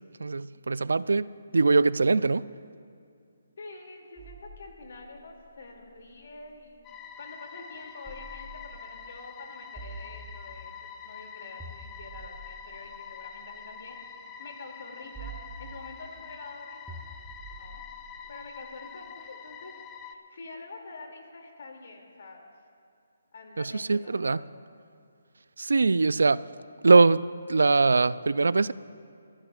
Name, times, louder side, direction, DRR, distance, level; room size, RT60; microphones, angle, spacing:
voice 1, 0.2-2.4 23.6-24.4 25.6-26.5 26.8-28.7, right 3 dB, 85° right, 0.3 m, -22 dB
voice 2, 3.6-6.8 7.2-14.0 14.4-17.0 17.5-22.5 23.3-24.6, left 3 dB, 60° left, 2.5 m, -46 dB
sound 1, 4.2-6.9 8.0-9.1 9.8-10.9 11.6-13.9 15.1-16.2 16.9-19.0, right 3 dB, 5° right, 1.0 m, -47 dB
sound 2, 6.8-20.1, left 7 dB, 15° left, 0.5 m, -45 dB
29.5 x 14.5 x 2.4 m
hypercardioid pair, 165°, 0 cm